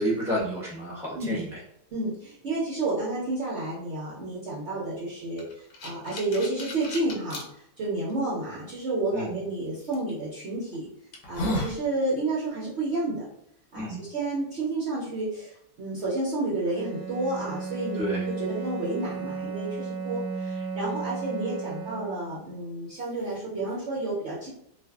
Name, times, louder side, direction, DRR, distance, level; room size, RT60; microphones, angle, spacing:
voice 1, 0.0-1.5 9.1-9.4 13.7-14.0 18.0-18.2, right 1 dB, ahead, -7 dB, 0.7 m, -30 dB
voice 2, 1.9-5.4 5.8-7.4 7.8-10.9 11.3-13.2 13.7-24.5, right 2 dB, 60° right, -6 dB, 0.8 m, -30 dB
sound 1, 5.4-7.4 8.1-8.2 9.9-10.1 10.7-10.8 11.1-11.8, left 1 dB, 70° left, 1.0 m, -32 dB
Bowed string instrument, 16.6-22.4, right 4 dB, 80° right, 1.1 m, -34 dB
2.5 x 2.5 x 2.3 m, 0.74 s
omnidirectional pair, 1.6 m